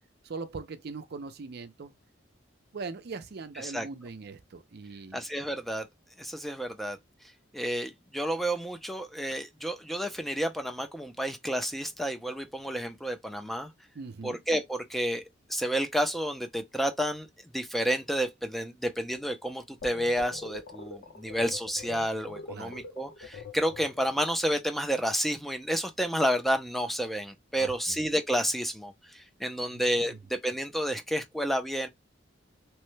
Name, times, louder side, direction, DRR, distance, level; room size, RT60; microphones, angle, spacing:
voice 1, 0.2-1.9 2.7-5.2 13.9-14.4 22.5-22.8 27.6-28.0 29.7-30.2, right 4 dB, 60° right, 0.5 m, -41 dB
voice 2, 5.1-5.8 6.2-7.0 7.5-13.7 14.2-15.2 15.5-17.3 17.5-31.9, equal, ahead, 0.4 m, -30 dB
sound 1, 19.8-24.2, left 4 dB, 65° left, 0.8 m, -44 dB
3.0 x 2.1 x 3.1 m
head